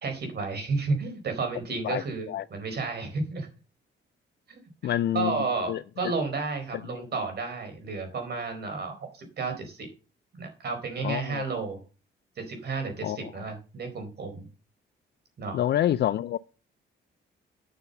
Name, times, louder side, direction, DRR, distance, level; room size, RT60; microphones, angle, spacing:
voice 1, 0.0-3.5 4.8-9.9 10.3-11.8 12.4-14.5 15.4-15.6, right 4 dB, 55° right, 4.3 m, -32 dB
voice 2, 1.8-2.4 4.8-5.4 5.7-5.8 6.9-7.1 11.0-11.4 13.0-13.3 15.5-16.4, left 12 dB, 60° left, 0.4 m, -27 dB
9.4 x 6.8 x 6.7 m
cardioid pair, 90°, 20 cm